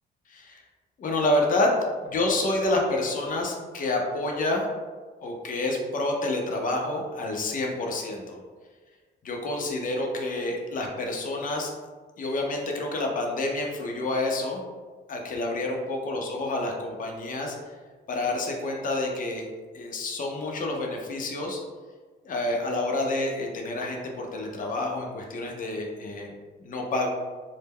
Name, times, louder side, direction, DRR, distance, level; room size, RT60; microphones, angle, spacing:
voice 1, 0.3-0.6 1.0-1.8 2.0-4.6 5.2-8.4 9.2-11.7 12.2-14.6 15.1-17.6 18.1-19.5 19.7-21.6 22.2-26.3 26.6-27.1, left 2 dB, 45° left, 0 dB, 0.5 m, -28 dB
2.1 x 2.0 x 3.4 m, 1.4 s
cardioid pair, 90°, 20 cm